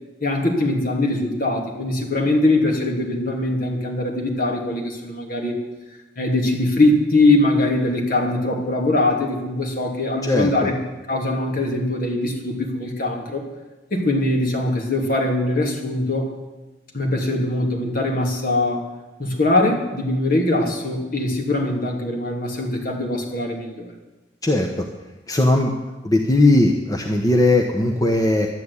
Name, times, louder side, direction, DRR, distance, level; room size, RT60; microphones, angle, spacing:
voice 1, 0.2-5.6 6.2-10.7 11.1-13.4 13.9-16.3 16.9-18.8 19.2-23.9, left 2 dB, 55° left, 1 dB, 3.0 m, -22 dB
voice 2, 10.2-10.7 24.4-24.8 25.3-25.7 26.0-28.5, left 2 dB, 20° left, 2 dB, 1.1 m, -18 dB
12.0 x 9.3 x 9.8 m, 1.1 s
head